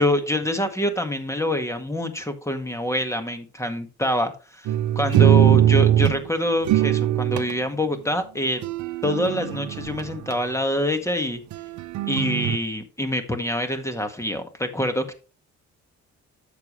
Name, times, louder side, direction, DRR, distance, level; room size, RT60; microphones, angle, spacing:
voice 1, 0.0-4.3 5.0-8.6 9.0-11.4 12.1-15.1, equal, 10° left, 7 dB, 1.7 m, -25 dB
sound 1, 4.7-6.2 6.7-7.5 8.6-10.3 11.5-12.6, right 11 dB, 75° right, 0.8 m, -20 dB
10.5 x 7.2 x 3.2 m, 0.33 s
cardioid pair, 90°, 30 cm